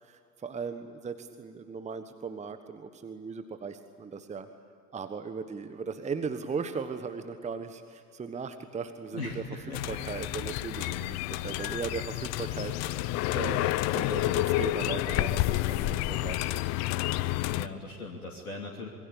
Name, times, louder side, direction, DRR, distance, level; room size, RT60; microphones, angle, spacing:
voice 1, 0.0-4.5 4.9-9.4 9.9-16.6, right 5 dB, 15° right, 9 dB, 1.4 m, -38 dB
voice 2, 9.1-9.8 17.5-18.9, left 3 dB, 75° left, 0 dB, 3.1 m, -39 dB
sound 1, 9.7-17.7, left 17 dB, 35° left, 0.8 m, -29 dB
27.0 x 23.5 x 8.7 m, 2.4 s
figure-of-eight pair, 80°, 45 cm